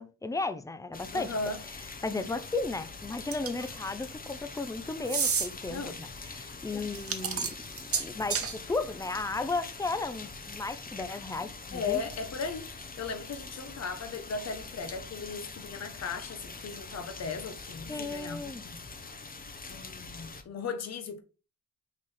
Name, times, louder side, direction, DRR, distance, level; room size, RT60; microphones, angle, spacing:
voice 1, 0.0-1.3 2.0-7.5 8.0-12.0 17.9-18.6, left 3 dB, 10° left, 0.6 m, -34 dB
sound 1, 0.9-20.4, left 4 dB, 25° left, 1.0 m, -44 dB
voice 2, 1.1-1.6 5.7-6.0 11.7-18.8 19.7-21.2, left 4 dB, 50° left, 1.1 m, -37 dB
sound 2, 3.3-3.7 5.0-5.5 6.9-8.5, right 6 dB, 45° right, 1.1 m, -30 dB
6.0 x 4.0 x 4.2 m
cardioid pair, 110°, 33 cm